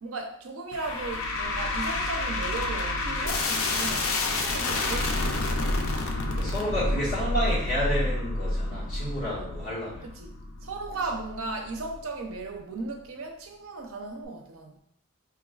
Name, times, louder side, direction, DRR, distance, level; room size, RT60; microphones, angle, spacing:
voice 1, 0.0-5.6 10.0-14.8, right 3 dB, 85° right, 4 dB, 0.6 m, -36 dB
sound 1, 0.7-12.0, left 2 dB, 85° left, 0.5 m, -29 dB
voice 2, 6.3-10.0, equal, 40° left, -8 dB, 1.4 m, -30 dB
4.5 x 2.3 x 2.3 m, 0.72 s
head